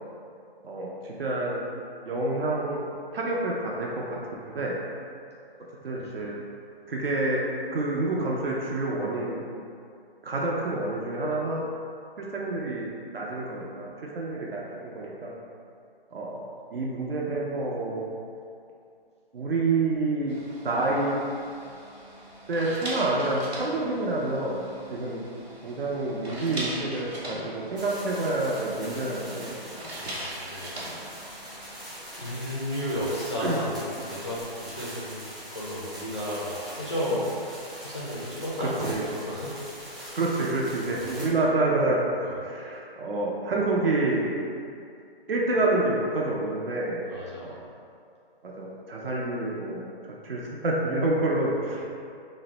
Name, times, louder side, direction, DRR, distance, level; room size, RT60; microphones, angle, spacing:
voice 1, 0.6-1.6 2.1-2.8 3.1-4.2 4.4-4.7 5.8-6.3 6.9-7.4 7.7-9.4 10.2-11.6 12.2-12.9 13.1-13.9 14.2-15.3 16.1-16.4 16.7-18.0 19.3-20.3 20.6-21.2 22.5-24.6 24.9-25.2 25.6-29.5 33.4-33.6 38.6-39.1 40.2-44.3 45.3-47.0 47.4-47.5 48.4-49.8 50.2-51.8, right 2 dB, 65° right, -3 dB, 0.5 m, -28 dB
voice 2, 5.9-6.2 30.0-30.8 32.2-35.2 35.5-39.5 39.8-40.2 40.8-41.1 42.2-42.4 47.0-47.7, equal, 30° left, -8 dB, 0.4 m, -33 dB
sound 1, 20.3-31.8, right 1 dB, 85° right, 1.0 m, -40 dB
sound 2, 27.8-41.3, equal, 20° right, 0.7 m, -42 dB
2.5 x 2.0 x 3.8 m, 2.4 s
hypercardioid pair, 165°, 31 cm